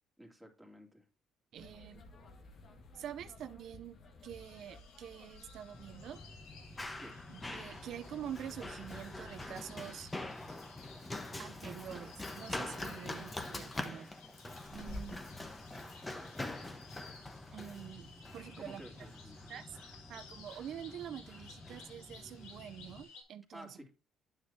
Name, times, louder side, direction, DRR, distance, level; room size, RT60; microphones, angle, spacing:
voice 1, 0.2-1.0 7.0-7.2 18.6-18.9 19.2-19.6 23.5-23.9, equal, ahead, 2.4 m, -52 dB
voice 2, 1.5-2.1 2.9-4.0 4.2-6.2 7.3-10.1 11.4-14.1 14.7-15.2 17.5-18.8 19.5-19.8 20.1-23.8, right 10 dB, 65° right, 0.5 m, -46 dB
sound 1, 1.6-9.6, left 2 dB, 55° left, 1.5 m, -56 dB
sound 2, 4.3-23.2, left 5 dB, 85° left, 2.2 m, -58 dB
Run, 5.7-23.0, left 2 dB, 15° left, 1.1 m, -45 dB
9.7 x 6.1 x 2.7 m
supercardioid pair, 75°, 0 cm